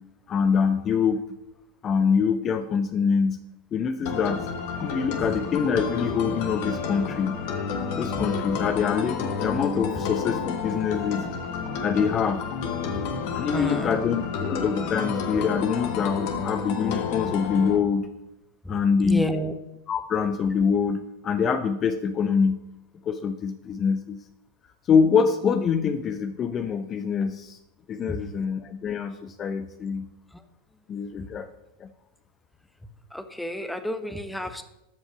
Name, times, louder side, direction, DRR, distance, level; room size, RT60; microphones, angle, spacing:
voice 1, 0.3-1.2 1.8-3.4 3.7-4.4 4.8-7.4 8.0-11.2 11.8-12.4 13.3-18.1 18.7-19.3 19.9-21.0 21.2-22.6 23.0-24.2 24.9-27.6 27.9-30.1 30.9-31.5 31.8-31.9, left 6 dB, 30° left, 9 dB, 0.7 m, -25 dB
sound 1, 4.1-17.8, left 5 dB, 50° left, 1.4 m, -30 dB
voice 2, 13.5-14.0 18.6-19.5 28.1-28.2 30.3-30.4 33.1-34.6, equal, 5° left, 8 dB, 1.0 m, -31 dB
12.5 x 5.3 x 6.2 m, 0.91 s
figure-of-eight pair, 85°, 0 cm